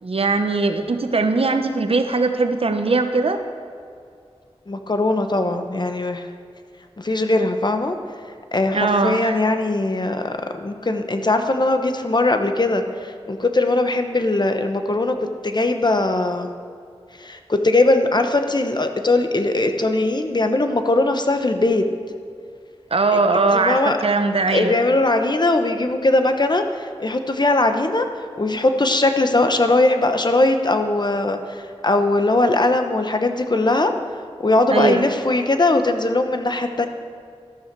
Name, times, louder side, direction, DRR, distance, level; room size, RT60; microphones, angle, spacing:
voice 1, 0.0-3.4 8.7-9.4 22.9-24.8 34.7-35.1, right 3 dB, 65° right, 7 dB, 0.9 m, -20 dB
voice 2, 4.7-6.3 7.0-8.0 8.5-16.6 17.2-21.9 23.1-23.2 23.5-24.0 24.5-28.1 28.4-33.9 34.4-36.9, left 2 dB, 45° left, 6 dB, 0.9 m, -20 dB
13.0 x 12.0 x 4.7 m, 2.3 s
wide cardioid pair, 70°, 11 cm